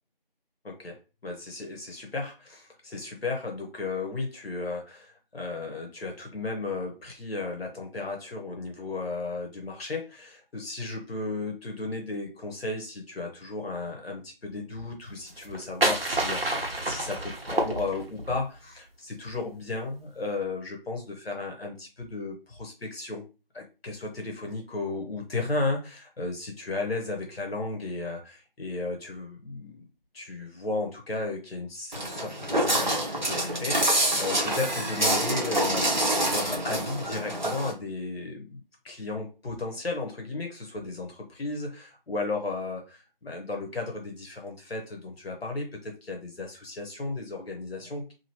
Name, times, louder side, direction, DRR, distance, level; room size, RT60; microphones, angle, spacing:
voice 1, 0.6-23.2 23.5-29.8 30.1-35.8 36.2-48.1, left 3 dB, 85° left, 1 dB, 0.9 m, -34 dB
sound 1, 15.3-18.3, right 1 dB, 75° right, 1.0 m, -28 dB
Walk footsteps, 31.9-37.7, right 1 dB, 50° right, 0.8 m, -26 dB
2.9 x 2.6 x 2.8 m, 0.31 s
figure-of-eight pair, 175°, 29 cm